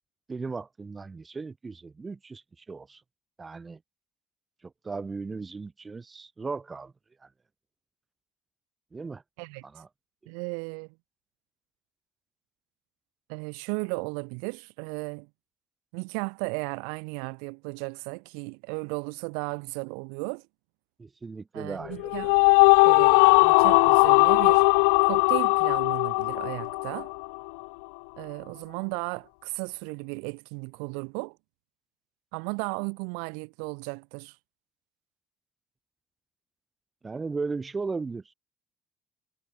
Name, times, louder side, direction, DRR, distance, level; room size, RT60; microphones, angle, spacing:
voice 1, 0.3-3.0 3.4-3.8 4.6-6.9 7.2-7.3 8.9-9.2 9.6-9.9 21.0-22.3 37.0-38.2, right 4 dB, 30° right, 7.4 m, -36 dB
voice 2, 10.3-10.9 13.3-15.3 15.9-20.4 21.5-22.3 22.8-24.7 25.0-27.1 28.2-31.4 32.3-34.4, right 40 dB or more, 80° right, 5.7 m, -35 dB
sound 1, 21.9-27.4, left 34 dB, 85° left, 0.6 m, -19 dB
hypercardioid pair, 65°, 0 cm